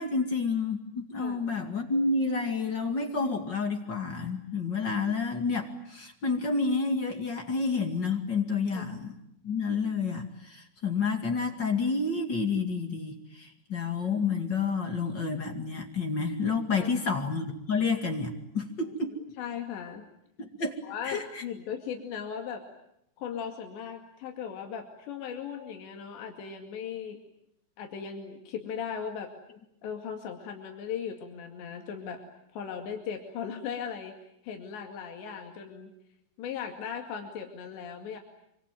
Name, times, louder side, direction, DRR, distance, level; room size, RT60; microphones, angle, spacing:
voice 1, 0.0-9.2 9.4-19.2 20.4-20.8 21.0-21.4, left 4 dB, 35° left, 4 dB, 2.2 m, -29 dB
voice 2, 4.8-5.2 8.7-8.8 16.7-16.9 18.8-18.9 19.4-20.1 20.8-22.7 23.2-27.2 27.8-29.3 29.8-32.2 32.5-34.2 34.4-35.9 36.4-38.2, left 7 dB, 90° left, 3 dB, 4.6 m, -38 dB
26.0 x 25.0 x 9.1 m, 0.78 s
omnidirectional pair, 4.9 m